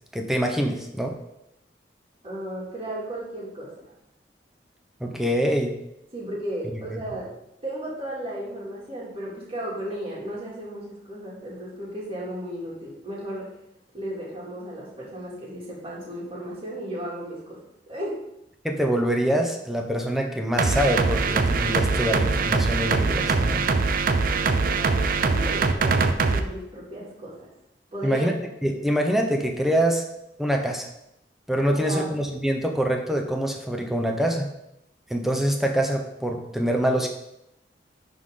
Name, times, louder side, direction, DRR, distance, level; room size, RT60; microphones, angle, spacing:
voice 1, 0.1-1.1 5.0-5.7 18.6-23.7 28.0-28.3 28.6-30.0 30.4-30.9 31.5-34.5 35.1-37.1, equal, ahead, 3 dB, 0.7 m, -25 dB
voice 2, 2.2-3.9 6.1-7.3 7.6-13.5 13.9-17.6 17.9-18.2 24.3-27.5 27.9-28.3 31.7-32.1, right 1 dB, 35° right, -5 dB, 2.3 m, -35 dB
sound 1, 20.6-26.4, right 4 dB, 55° right, 0.5 m, -22 dB
11.0 x 4.0 x 3.8 m, 0.84 s
head